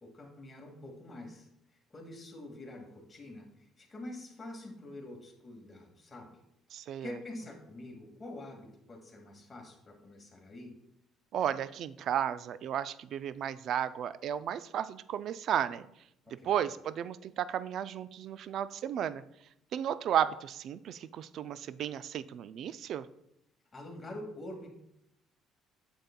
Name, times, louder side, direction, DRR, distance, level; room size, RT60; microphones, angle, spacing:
voice 1, 0.0-1.5 1.9-6.3 7.0-10.7 16.2-16.6 23.7-24.7, left 1 dB, 25° left, 0 dB, 2.0 m, -46 dB
voice 2, 6.7-7.1 11.3-15.9 16.4-19.2 19.7-23.1, right 9 dB, 60° right, 15 dB, 0.3 m, -33 dB
8.9 x 7.0 x 2.2 m, 0.78 s
supercardioid pair, 90°, 0 cm